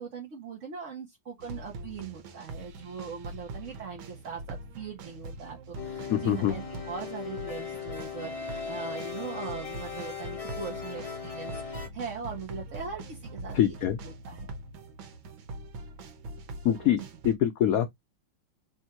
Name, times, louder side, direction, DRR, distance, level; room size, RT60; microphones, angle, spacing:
voice 1, 0.0-13.8 14.0-14.5 16.8-16.9, right 6 dB, 45° right, 1.3 m, -40 dB
sound 1, 1.4-17.4, right 2 dB, 85° right, 1.6 m, -43 dB
sound 2, 5.8-11.9, left 6 dB, 35° left, 0.5 m, -38 dB
voice 2, 6.1-6.5 13.5-14.0 16.6-17.9, left 11 dB, 75° left, 0.8 m, -25 dB
3.5 x 2.7 x 4.3 m
omnidirectional pair, 2.1 m